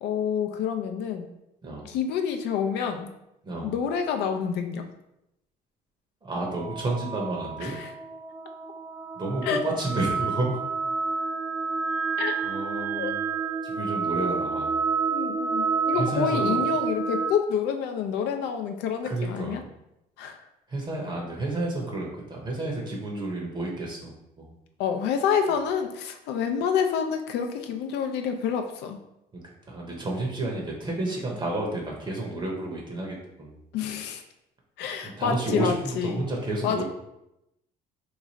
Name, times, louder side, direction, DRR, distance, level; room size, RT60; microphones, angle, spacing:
voice 1, 0.0-1.3 1.9-3.1 3.6-4.8 7.6-7.9 9.4-9.6 12.2-12.4 13.0-13.1 15.1-19.6 20.2-20.4 24.8-29.0 33.7-34.2 34.8-36.2 36.6-36.8, left 7 dB, 80° left, 5 dB, 0.4 m, -28 dB
voice 2, 6.2-7.8 9.2-10.6 12.4-13.2 13.6-14.8 15.9-16.6 19.0-19.7 20.7-24.6 29.7-33.6 35.0-36.8, right 2 dB, 25° right, -1 dB, 0.7 m, -31 dB
sound 1, 6.4-17.3, right 5 dB, 10° right, 0.3 m, -29 dB
3.0 x 2.4 x 3.9 m, 0.86 s
cardioid pair, 110°, 17 cm